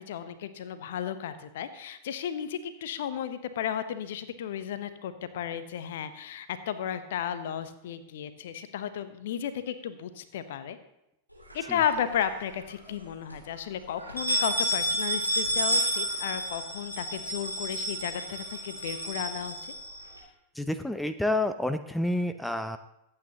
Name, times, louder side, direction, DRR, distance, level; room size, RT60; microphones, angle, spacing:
voice 1, 0.0-10.8 11.5-19.6, left 9 dB, 55° left, 11 dB, 1.0 m, -34 dB
sound 1, 11.5-12.4 12.8-12.9 13.3-13.4 14.0-20.2, right 1 dB, 90° right, 3.0 m, -31 dB
voice 2, 20.6-22.8, left 1 dB, 5° left, 10 dB, 0.6 m, -29 dB
23.0 x 8.8 x 2.9 m, 0.84 s
figure-of-eight pair, 90°, 0 cm